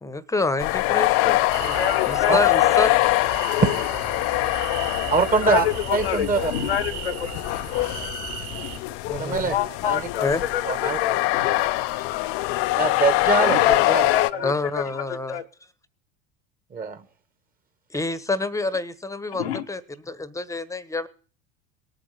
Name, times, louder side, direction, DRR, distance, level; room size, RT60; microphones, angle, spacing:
voice 1, 0.0-2.9 9.1-9.6 10.2-10.4 14.4-15.4 17.9-21.1, left 3 dB, 10° left, 17 dB, 1.2 m, -28 dB
sound 1, 0.6-14.3, left 19 dB, 50° left, 0.7 m, -24 dB
sound 2, 1.5-8.8, right 10 dB, 50° right, 3.9 m, -36 dB
voice 2, 1.7-2.7 5.4-7.3 8.6-8.8 9.5-11.6 13.4-15.4 19.3-19.7, left 10 dB, 75° left, 6 dB, 1.1 m, -27 dB
voice 3, 5.1-5.7 5.9-6.5 9.1-9.6 9.9-10.0 10.7-11.0 12.8-14.1 14.3-14.5 16.7-17.0, right 4 dB, 30° right, 9 dB, 2.0 m, -23 dB
18.5 x 8.8 x 7.0 m, 0.41 s
figure-of-eight pair, 75°, 31 cm